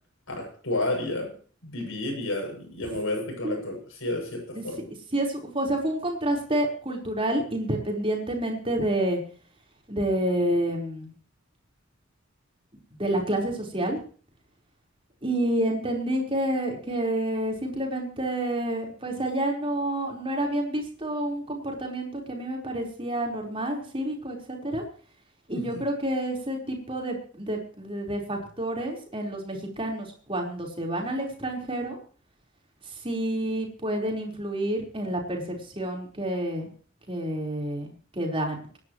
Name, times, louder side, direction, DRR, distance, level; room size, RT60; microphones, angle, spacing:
voice 1, 0.3-1.3 1.6-4.8 25.5-25.8, left 2 dB, 70° left, 1 dB, 7.4 m, -31 dB
voice 2, 5.1-9.2 9.9-11.1 13.0-14.0 15.2-24.8 25.5-32.0 32.8-36.7 37.1-38.8, right 1 dB, 25° right, 1 dB, 4.5 m, -29 dB
25.5 x 11.0 x 3.2 m, 0.43 s
head